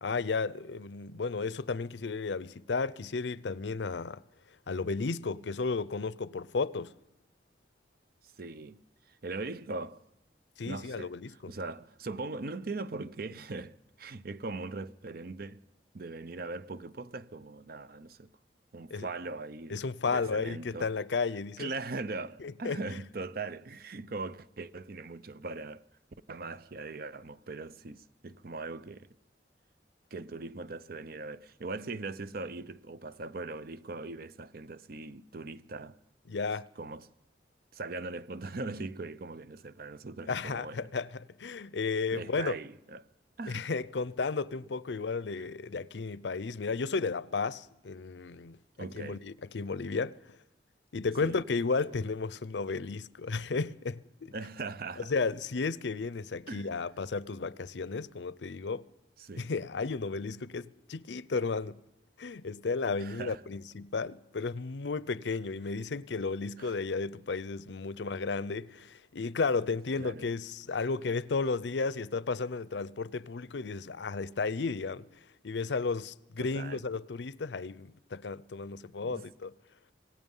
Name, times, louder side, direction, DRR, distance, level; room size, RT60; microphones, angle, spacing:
voice 1, 0.0-4.2 4.7-6.9 10.6-11.5 18.9-19.1 19.7-21.7 22.4-22.8 36.3-36.7 40.3-41.1 41.4-42.6 43.5-50.1 50.9-54.3 55.1-58.8 59.4-61.8 62.2-75.1 75.4-79.5, left 4 dB, 85° left, 0.6 m, -33 dB
voice 2, 8.2-10.0 10.6-15.6 15.9-18.3 18.7-20.9 21.6-25.8 26.3-29.1 30.1-36.0 36.8-37.1 37.7-40.8 42.1-43.1 43.4-43.7 48.8-49.2 51.2-51.4 54.3-55.1 56.5-56.8 59.2-59.5 63.0-63.4 66.6-66.8 70.0-70.3 76.4-76.8 79.0-79.3, right 3 dB, 60° right, 0.7 m, -40 dB
26.0 x 18.5 x 5.5 m
head